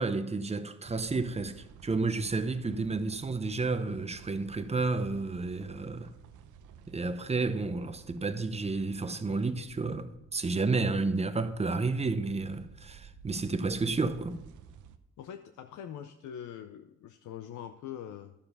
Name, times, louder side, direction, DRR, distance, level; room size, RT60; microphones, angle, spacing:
voice 1, 0.0-6.1 6.9-14.4, right 3 dB, 20° right, 0.8 m, -31 dB
sound 1, 0.8-15.0, right 7 dB, 80° right, 0.8 m, -53 dB
voice 2, 15.2-18.3, left 9 dB, 75° left, 0.6 m, -43 dB
11.5 x 7.0 x 5.4 m
cardioid pair, 90°, 30 cm